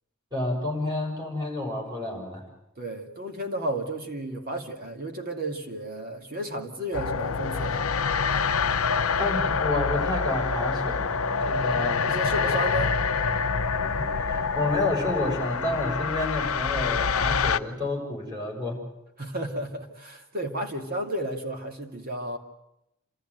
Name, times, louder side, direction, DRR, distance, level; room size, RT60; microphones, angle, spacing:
voice 1, 0.3-2.4 9.2-12.0 13.9-18.8, left 2 dB, 20° right, -1 dB, 6.7 m, -30 dB
voice 2, 2.8-7.9 11.6-13.0 19.2-22.4, right 1 dB, 45° right, 3 dB, 2.5 m, -33 dB
sound 1, 6.9-17.6, left 5 dB, 70° left, 0.7 m, -26 dB
28.5 x 13.5 x 9.2 m, 0.86 s
head